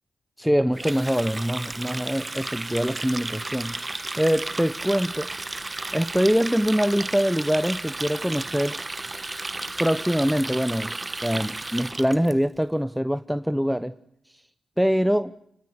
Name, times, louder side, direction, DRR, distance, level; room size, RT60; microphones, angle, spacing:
voice 1, 0.4-3.8 4.2-5.3 5.9-8.8 9.8-10.9 11.2-13.9 14.8-15.3, equal, ahead, 12 dB, 1.1 m, -24 dB
Water tap faucet, 0.7-12.3, right 2 dB, 25° right, 1.5 m, -33 dB
29.5 x 20.0 x 9.9 m, 0.75 s
cardioid pair, 50°, 0 cm